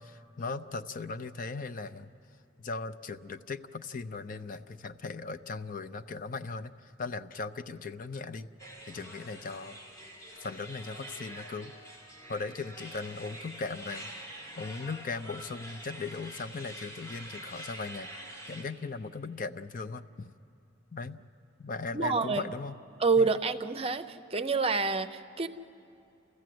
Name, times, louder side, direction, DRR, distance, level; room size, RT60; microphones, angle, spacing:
voice 1, 0.0-2.1 2.6-8.5 8.9-9.8 10.4-12.0 12.3-14.1 14.6-18.1 18.5-20.3 20.9-21.2 21.6-22.7 23.2-23.3, left 4 dB, 45° left, 11 dB, 0.5 m, -38 dB
sound 1, 8.6-18.6, right 1 dB, 15° left, 2.5 m, -46 dB
voice 2, 21.9-22.4 23.0-25.5, right 4 dB, 30° right, 10 dB, 0.6 m, -27 dB
29.0 x 15.0 x 7.7 m, 2.8 s
head